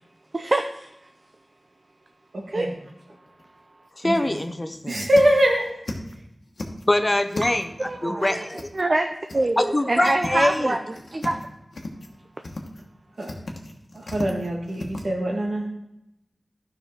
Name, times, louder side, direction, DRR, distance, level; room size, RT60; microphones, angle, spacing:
voice 1, 0.3-0.9 2.5-2.7 7.8-8.4 8.7-9.1 9.3-11.4, right 2 dB, 45° right, 5 dB, 0.5 m, -25 dB
voice 2, 2.3-2.7 4.0-4.3 4.9-5.7 8.2-8.3 13.2-13.3 13.9-15.7, equal, 75° right, 0 dB, 1.7 m, -23 dB
sound 1, 3.0-3.4 3.8-3.9 4.3-4.4 4.7-6.1 6.4-7.8 8.5-9.0 9.3-9.4 9.8-10.6 10.9-11.4 11.7-12.1 12.4-12.8 13.2-15.0, left 2 dB, 80° left, 1.2 m, -36 dB
voice 3, 4.0-5.0 6.9-8.7 9.6-10.8, left 1 dB, 30° left, 8 dB, 0.6 m, -24 dB
12.5 x 5.6 x 3.6 m, 0.87 s
wide cardioid pair, 65°, 0 cm